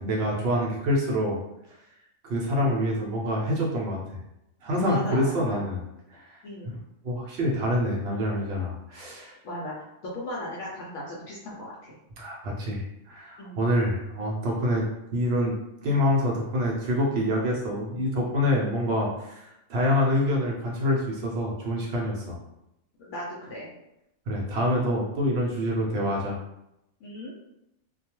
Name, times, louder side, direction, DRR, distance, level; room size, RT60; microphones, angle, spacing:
voice 1, 0.0-1.4 2.2-4.0 4.6-5.8 6.1-6.4 7.0-9.3 12.2-14.9 15.1-15.5 15.8-22.4 24.3-26.4, equal, 60° right, -2 dB, 0.7 m, -26 dB
voice 2, 4.8-5.7 6.4-6.8 9.4-9.7 10.0-12.0 13.4-13.6 23.1-23.7 27.0-27.4, left 1 dB, 70° left, -4 dB, 0.8 m, -36 dB
2.3 x 2.2 x 2.9 m, 0.87 s
omnidirectional pair, 1.4 m